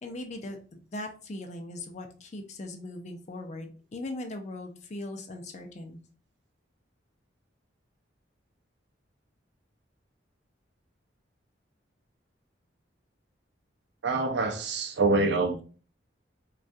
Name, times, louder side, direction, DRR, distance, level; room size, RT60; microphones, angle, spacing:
voice 1, 0.0-6.0, left 1 dB, 35° left, 0.4 m, -39 dB
voice 2, 14.0-15.6, right 3 dB, 60° right, 0.4 m, -25 dB
2.3 x 2.2 x 2.5 m
head